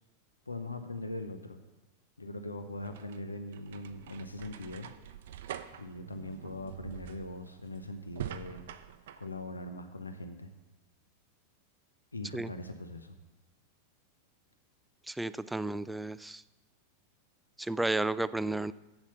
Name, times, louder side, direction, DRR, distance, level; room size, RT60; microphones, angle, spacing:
voice 1, 0.5-1.6 2.2-4.9 5.8-8.6 9.2-10.5 12.1-13.1, left 2 dB, 80° left, 7 dB, 0.7 m, -41 dB
sound 1, 2.6-9.3, right 11 dB, 55° right, 0.5 m, -45 dB
voice 2, 15.1-16.4 17.6-18.7, right 2 dB, 5° right, 16 dB, 0.3 m, -32 dB
8.0 x 7.2 x 6.9 m, 1.0 s
figure-of-eight pair, 90°, 0 cm